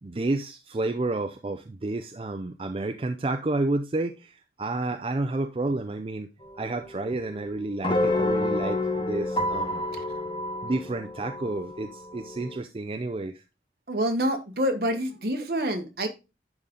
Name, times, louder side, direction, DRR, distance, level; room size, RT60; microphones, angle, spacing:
voice 1, 0.0-6.3 6.6-9.8 10.6-13.4, right 2 dB, 30° right, 0.4 m, -30 dB
sound 1, 6.4-12.6, left 2 dB, 25° left, 1.2 m, -29 dB
voice 2, 13.9-16.1, equal, 60° right, 1.3 m, -27 dB
10.5 x 3.9 x 3.7 m
head